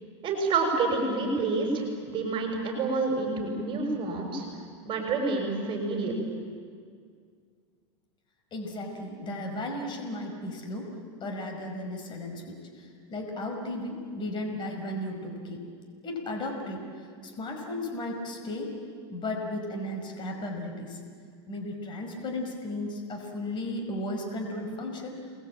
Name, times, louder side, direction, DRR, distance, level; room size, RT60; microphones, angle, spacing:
voice 1, 0.2-4.4 4.8-6.1, right 3 dB, 35° right, 2 dB, 6.0 m, -28 dB
voice 2, 8.5-10.9 11.2-15.6 16.0-18.7 19.1-21.0 21.5-25.2, left 1 dB, 30° left, 3 dB, 5.1 m, -35 dB
29.0 x 20.5 x 8.8 m, 2.1 s
supercardioid pair, 120°, 15 cm